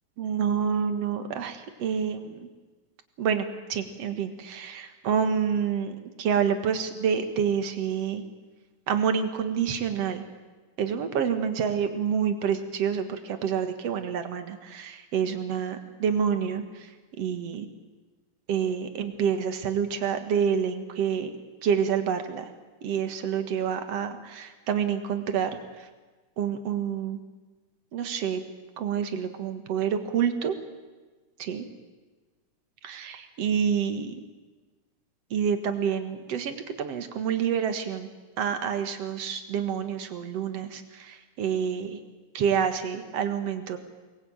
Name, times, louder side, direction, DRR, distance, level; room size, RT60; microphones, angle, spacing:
voice 1, 0.2-2.5 3.2-8.2 8.9-10.2 10.8-16.9 17.2-17.7 18.5-21.3 21.6-22.5 22.8-25.9 26.4-27.2 27.9-28.4 28.8-30.6 31.5-31.6 32.8-34.1 35.3-38.1 38.4-42.0 42.3-43.8, right 7 dB, 55° right, 7 dB, 2.5 m, -28 dB
24.0 x 20.0 x 8.9 m, 1.3 s
omnidirectional pair, 3.6 m